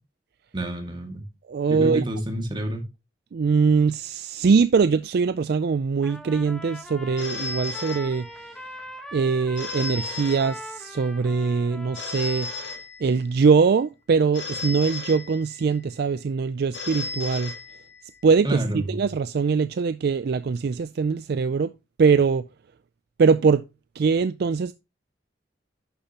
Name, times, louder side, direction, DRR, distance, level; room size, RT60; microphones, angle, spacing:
voice 1, 0.5-1.2 1.7-2.9 18.4-18.9, right 1 dB, 25° right, 2.1 m, -28 dB
voice 2, 1.5-2.1 3.3-8.3 9.1-12.5 13.0-17.5 18.2-21.7 22.0-22.5 23.2-23.6 24.0-24.7, right 5 dB, 55° right, 0.4 m, -22 dB
Trumpet, 6.0-12.8, left 1 dB, 5° left, 1.2 m, -41 dB
Telephone, 7.2-8.7 9.6-11.1 11.9-13.4 14.3-15.8 16.7-18.2, left 4 dB, 70° left, 2.2 m, -35 dB
11.0 x 6.8 x 2.9 m
head